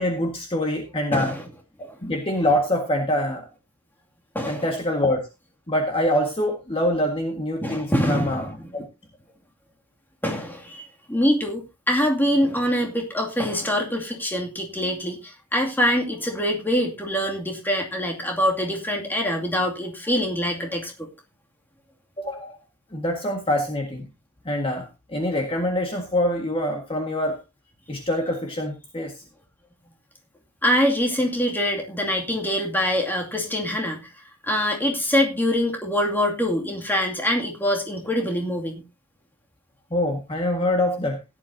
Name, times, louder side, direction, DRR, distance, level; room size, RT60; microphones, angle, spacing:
voice 1, 0.0-1.3 1.8-3.5 4.4-5.2 5.7-8.8 22.2-22.6 22.9-24.1 24.4-27.4 27.9-29.1 39.9-41.2, left 1 dB, 25° left, 1.7 m, -25 dB
voice 2, 1.1-1.4 4.3-4.6 7.6-8.5 10.2-20.9 30.6-34.1 34.4-38.8, equal, 10° left, 2.4 m, -24 dB
16.0 x 11.0 x 2.7 m
head